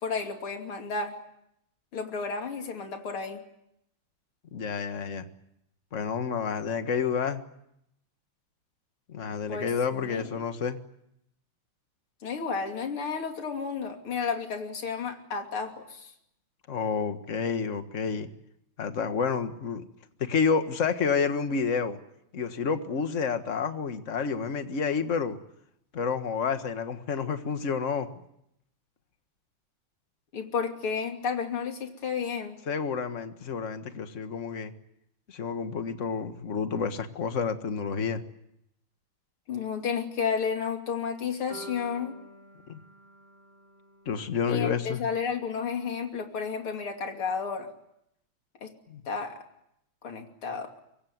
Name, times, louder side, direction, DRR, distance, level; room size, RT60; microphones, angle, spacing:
voice 1, 0.0-1.2 1.9-3.4 9.5-9.7 10.0-10.4 12.2-16.1 30.3-32.6 39.5-42.2 44.5-47.7 48.6-48.7 49.1-49.4 50.0-50.7, left 6 dB, 80° left, 4 dB, 3.7 m, -32 dB
voice 2, 4.5-5.2 5.9-7.4 9.1-10.8 16.7-18.3 18.8-19.8 20.2-22.0 22.3-25.4 25.9-28.1 32.7-34.7 35.3-38.2 42.7-42.8 44.1-45.0 48.9-49.0, left 5 dB, 40° left, 8 dB, 1.7 m, -29 dB
sound 1, 41.5-45.6, left 1 dB, 25° right, 7.5 m, -49 dB
25.0 x 23.0 x 9.5 m, 0.79 s
omnidirectional pair, 2.4 m